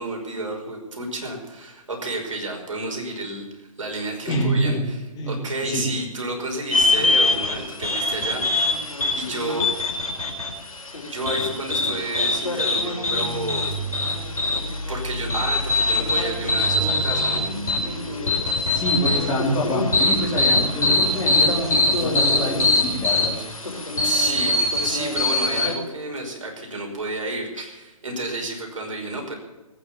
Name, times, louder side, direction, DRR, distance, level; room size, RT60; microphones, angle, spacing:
voice 1, 0.0-5.0 5.2-8.8 9.2-9.7 11.0-13.8 14.9-17.5 24.0-29.4, right 2 dB, 60° right, 2 dB, 5.4 m, -31 dB
voice 2, 4.3-4.9 5.2-5.9 18.7-23.4, equal, 20° left, -1 dB, 2.9 m, -26 dB
sound 1, 6.7-25.7, left 2 dB, 70° left, 4.4 m, -23 dB
sound 2, 13.0-23.0, right 1 dB, 10° right, 5.6 m, -34 dB
18.5 x 9.7 x 7.3 m, 1.1 s
figure-of-eight pair, 130°, 18 cm